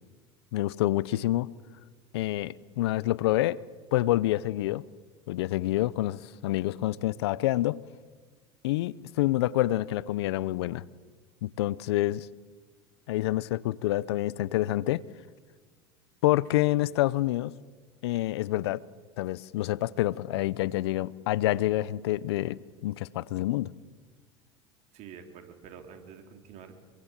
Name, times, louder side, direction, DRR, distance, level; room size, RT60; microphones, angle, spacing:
voice 1, 0.5-1.5 2.1-3.6 3.9-4.8 5.3-7.8 8.6-10.8 11.4-12.3 13.1-15.0 16.2-17.5 18.0-18.8 19.2-23.7, left 16 dB, 75° left, 21 dB, 0.7 m, -27 dB
voice 2, 24.9-26.8, right 7 dB, 55° right, 5 dB, 3.9 m, -47 dB
27.0 x 23.0 x 7.6 m, 1.4 s
hypercardioid pair, 90°, 14 cm